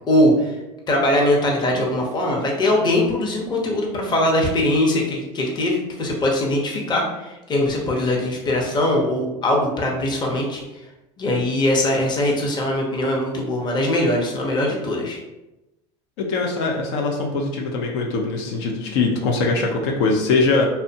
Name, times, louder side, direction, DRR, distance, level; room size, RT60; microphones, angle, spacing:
voice 1, 0.1-0.6 0.9-10.6 11.2-15.2, left 1 dB, 30° left, -1 dB, 0.7 m, -21 dB
voice 2, 16.2-20.7, left 3 dB, 75° left, 1 dB, 0.5 m, -22 dB
2.6 x 2.1 x 2.7 m, 1.0 s
supercardioid pair, 95°, 15 cm